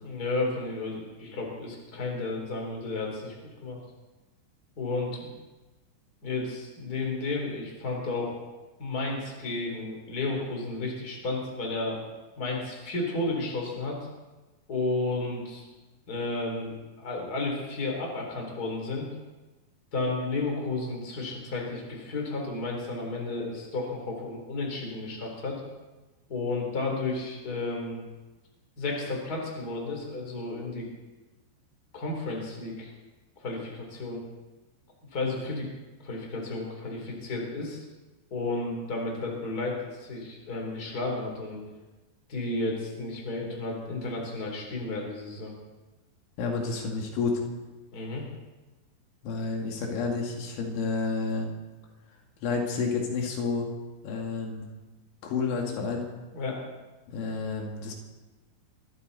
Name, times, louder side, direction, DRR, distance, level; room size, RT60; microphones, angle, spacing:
voice 1, 0.0-3.3 3.6-3.8 4.8-5.3 6.2-8.4 8.8-12.0 12.4-14.0 14.7-15.7 16.1-19.1 19.9-25.6 26.3-28.0 28.8-30.9 31.9-32.9 33.4-34.2 35.1-35.7 36.0-37.8 38.3-41.6 42.3-45.5 47.9-48.2 56.3-56.6, left 2 dB, 20° left, 0 dB, 3.6 m, -32 dB
voice 2, 46.4-47.4 49.2-51.5 52.4-53.7 54.0-54.7 55.2-56.1 57.1-57.9, left 4 dB, 85° left, 1 dB, 4.6 m, -30 dB
23.5 x 14.0 x 4.2 m, 1.2 s
omnidirectional pair, 5.3 m